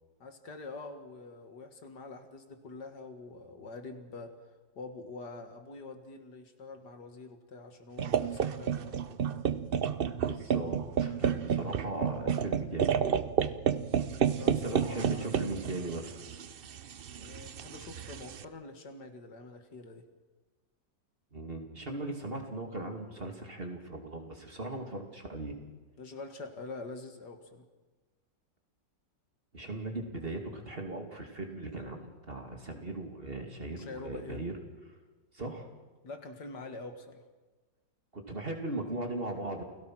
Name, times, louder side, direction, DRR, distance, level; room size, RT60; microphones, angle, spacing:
voice 1, 0.2-4.3 4.8-9.4 14.0-15.5 17.2-20.0 26.0-27.7 33.7-34.4 36.0-37.3, left 3 dB, 65° left, 7 dB, 2.3 m, -45 dB
sound 1, 8.0-18.4, right 8 dB, 65° right, 0.5 m, -31 dB
voice 2, 10.2-12.9 14.4-16.2 21.3-25.5 29.5-34.5 35.3-35.7 38.1-39.6, right 2 dB, 30° right, 3 dB, 2.8 m, -38 dB
29.0 x 17.5 x 6.2 m, 1.3 s
omnidirectional pair, 2.0 m